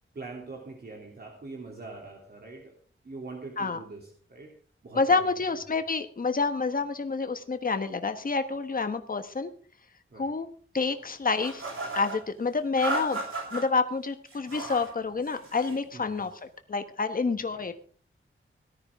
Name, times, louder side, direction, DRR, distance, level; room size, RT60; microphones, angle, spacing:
voice 1, 0.1-2.8 3.0-4.6 4.8-5.6 10.1-10.3 15.9-16.2 17.2-17.6, right 3 dB, 50° right, 0 dB, 3.0 m, -43 dB
voice 2, 4.9-9.5 10.2-10.5 10.7-11.6 11.9-13.2 13.5-17.7, left 4 dB, 40° left, 8 dB, 1.4 m, -28 dB
sound 1, 11.4-12.2 12.8-13.6 14.3-14.9 15.2-15.8, right 2 dB, 80° right, 7.9 m, -34 dB
18.5 x 13.5 x 3.7 m, 0.41 s
wide cardioid pair, 125°, 21 cm